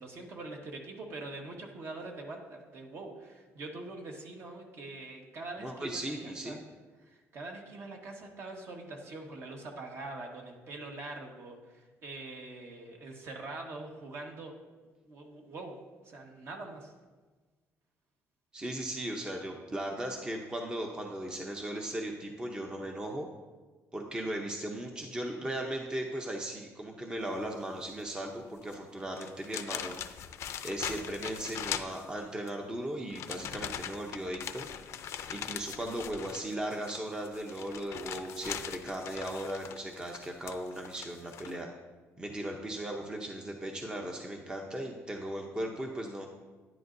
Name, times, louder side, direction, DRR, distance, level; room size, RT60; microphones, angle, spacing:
voice 1, 0.0-6.6 7.0-14.5 15.0-15.8 16.0-16.9, right 2 dB, 50° right, 1 dB, 1.4 m, -44 dB
voice 2, 5.6-6.6 18.5-23.3 23.9-30.0 30.6-34.7 35.1-41.7 42.2-46.3, right 1 dB, 15° right, 2 dB, 0.7 m, -37 dB
sound 1, 28.6-28.7 29.1-32.5 33.1-41.6, left 9 dB, 60° left, 0.5 m, -41 dB
10.5 x 10.0 x 2.6 m, 1.3 s
cardioid pair, 140°, 5 cm